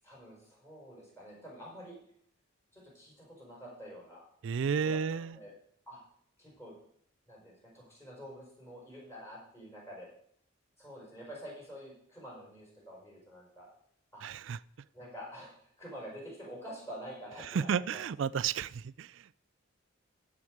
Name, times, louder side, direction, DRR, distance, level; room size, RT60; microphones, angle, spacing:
voice 1, 0.0-2.0 2.7-4.2 4.6-5.5 5.9-6.0 6.4-6.7 7.3-10.1 10.8-13.7 14.1-14.2 14.9-18.0, equal, 15° left, -5 dB, 5.2 m, -48 dB
voice 2, 4.4-5.4 14.2-14.6 17.5-19.3, right 7 dB, 60° right, 18 dB, 0.3 m, -32 dB
14.5 x 4.9 x 7.8 m, 0.66 s
head